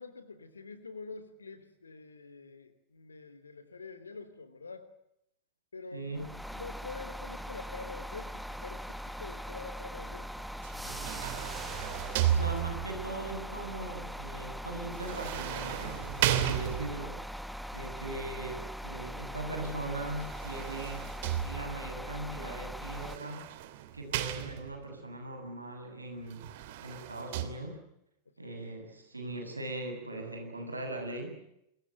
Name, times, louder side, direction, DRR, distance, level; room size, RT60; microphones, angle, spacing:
voice 1, 0.0-4.9 5.7-10.5 28.4-28.6, left 4 dB, 75° left, 13 dB, 3.2 m, -46 dB
voice 2, 5.9-6.3 12.3-17.2 17.7-21.1 21.4-23.5 23.9-26.5 26.8-27.8 28.4-31.4, right 2 dB, 80° right, 4 dB, 7.3 m, -40 dB
sound 1, 6.1-23.2, equal, ahead, 1.1 m, -41 dB
sound 2, 10.6-13.1 14.9-17.2 20.1-21.9 22.9-24.9 26.3-27.4, right 11 dB, 50° right, 2.9 m, -34 dB
27.5 x 23.5 x 8.2 m, 0.79 s
figure-of-eight pair, 90°, 0 cm